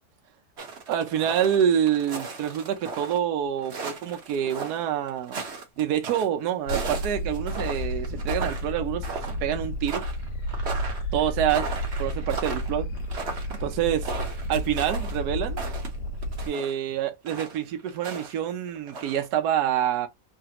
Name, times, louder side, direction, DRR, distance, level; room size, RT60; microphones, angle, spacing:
sound 1, 0.6-3.2 3.6-6.3 6.7-8.8 9.0-9.5 9.8-16.7 17.3-18.3 18.7-19.2, right 4 dB, 45° right, 1.1 m, -36 dB
voice 1, 0.9-5.4 5.8-10.0 11.1-12.9 13.5-14.1 14.5-15.6 16.4-20.1, right 10 dB, 75° right, 1.2 m, -27 dB
sound 2, 6.7-16.5, equal, 85° left, 1.2 m, -32 dB
3.3 x 2.4 x 2.8 m
omnidirectional pair, 1.8 m